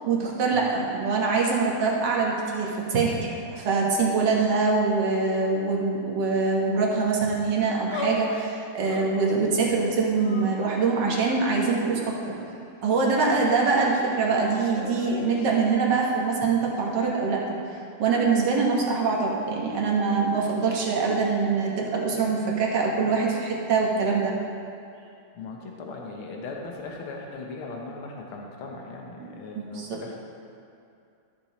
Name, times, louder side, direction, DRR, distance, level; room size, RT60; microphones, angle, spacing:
voice 1, 0.0-12.4 12.8-17.4 18.0-24.3 29.2-29.3 29.7-30.0, right 4 dB, 60° right, -2 dB, 1.8 m, -24 dB
sound 1, 7.9-8.5 8.8-9.5 10.2-11.1 11.8-12.8 14.2-15.5, left 1 dB, 60° left, 1.1 m, -38 dB
voice 2, 25.4-30.2, left 3 dB, 90° left, 0 dB, 1.8 m, -38 dB
13.5 x 7.1 x 3.0 m, 2.5 s
omnidirectional pair, 2.3 m